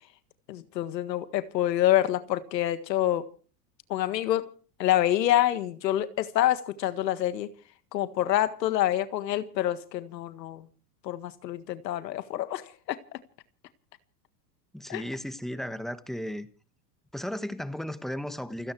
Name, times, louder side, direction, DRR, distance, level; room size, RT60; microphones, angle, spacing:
voice 1, 0.5-3.2 3.9-4.5 4.8-7.5 7.9-10.7 11.0-13.0 14.9-15.0, left 13 dB, 90° left, 1.7 m, -27 dB
voice 2, 14.7-16.5 17.1-18.7, equal, ahead, 1.4 m, -35 dB
29.0 x 10.0 x 4.7 m
supercardioid pair, 125°, 49 cm